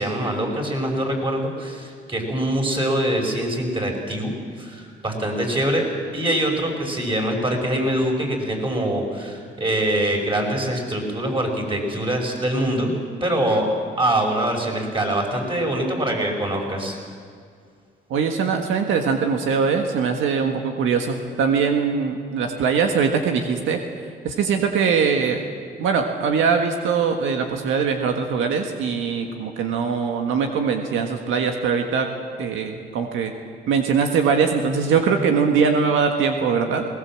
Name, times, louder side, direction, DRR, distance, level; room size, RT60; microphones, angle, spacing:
voice 1, 0.0-5.9 6.1-13.7 14.0-17.0, right 1 dB, 25° right, 1 dB, 5.6 m, -24 dB
voice 2, 18.1-23.8 24.2-25.4 25.8-32.1 32.4-33.3 33.7-36.9, right 6 dB, 85° right, 4 dB, 1.7 m, -21 dB
20.5 x 19.0 x 7.6 m, 2.2 s
cardioid pair, 90°, 20 cm